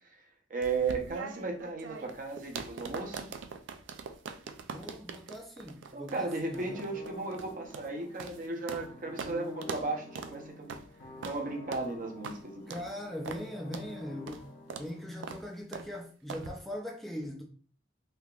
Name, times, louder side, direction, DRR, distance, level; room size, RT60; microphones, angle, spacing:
voice 1, 0.5-3.3 5.9-10.8 11.2-12.8, right 3 dB, 45° right, 0.7 m, -35 dB
sound 1, 0.6-8.9 9.2-9.3 9.6-9.9 10.2-10.3 10.7-10.9 11.2-11.4 11.7-11.9 12.2-12.4 12.7-12.9 13.3-13.4 13.7-13.9 14.3-14.4 14.7-14.9 15.2-15.4 15.7-15.9 16.3-16.5, right 5 dB, 80° right, 0.4 m, -42 dB
voice 2, 4.7-6.9 12.7-14.5 14.8-17.4, left 1 dB, ahead, 0.4 m, -40 dB
sound 2, 6.5-15.5, left 2 dB, 55° left, 0.8 m, -49 dB
3.4 x 2.8 x 2.3 m
head